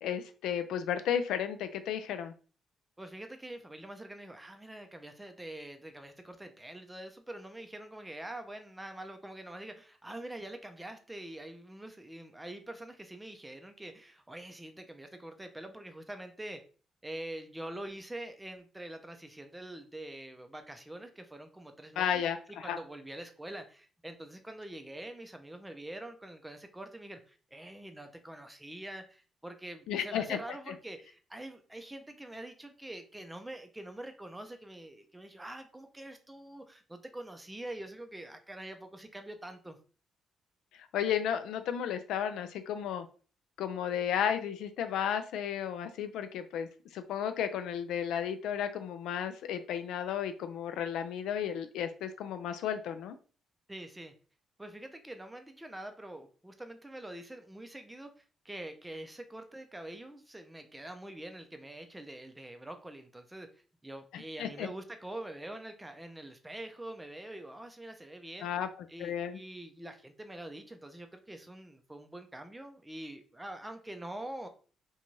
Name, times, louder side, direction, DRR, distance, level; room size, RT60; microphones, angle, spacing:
voice 1, 0.0-2.3 22.0-22.8 29.9-30.4 40.7-43.1 43.6-46.7 46.9-53.2 64.1-64.7 68.4-68.7 69.0-69.4, left 9 dB, 85° left, 9 dB, 0.3 m, -33 dB
voice 2, 3.0-16.6 17.0-22.2 22.6-39.8 53.7-54.1 54.6-68.5 68.9-74.5, right 1 dB, 10° right, 6 dB, 0.4 m, -45 dB
2.6 x 2.2 x 3.0 m, 0.38 s
cardioid pair, 90°, 0 cm